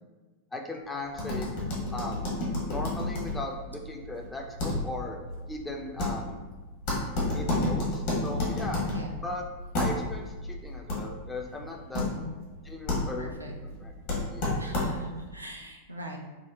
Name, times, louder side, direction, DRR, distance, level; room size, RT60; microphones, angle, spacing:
voice 1, 0.5-1.5 1.9-2.3 2.7-5.2 5.5-6.4 7.3-8.8 9.2-9.4 9.8-12.1 12.6-13.9 14.3-14.6, left 2 dB, 10° left, 1 dB, 0.3 m, -38 dB
sound 1, 1.1-15.2, left 2 dB, 50° left, 0.8 m, -32 dB
voice 2, 11.9-12.3 13.2-13.5 14.6-16.2, equal, 85° right, 0 dB, 0.4 m, -41 dB
3.6 x 2.0 x 2.2 m, 1.2 s
figure-of-eight pair, 90°, 0 cm